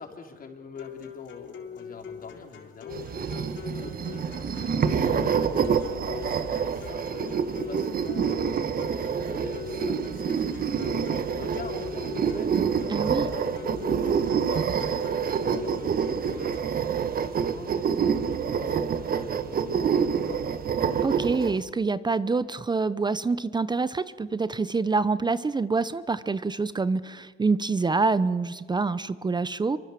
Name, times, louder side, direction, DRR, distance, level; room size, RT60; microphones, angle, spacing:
voice 1, 0.0-8.5 9.3-12.6 13.1-16.6 17.0-20.5, left 5 dB, 40° left, 3 dB, 4.4 m, -44 dB
sound 1, 0.8-16.8, left 7 dB, 60° left, 3.5 m, -41 dB
sound 2, 2.9-21.6, right 7 dB, 45° right, 1.6 m, -27 dB
voice 2, 12.9-13.3 21.0-29.8, right 4 dB, 20° right, 16 dB, 0.8 m, -26 dB
25.5 x 24.0 x 7.6 m, 1.5 s
cardioid pair, 90°, 21 cm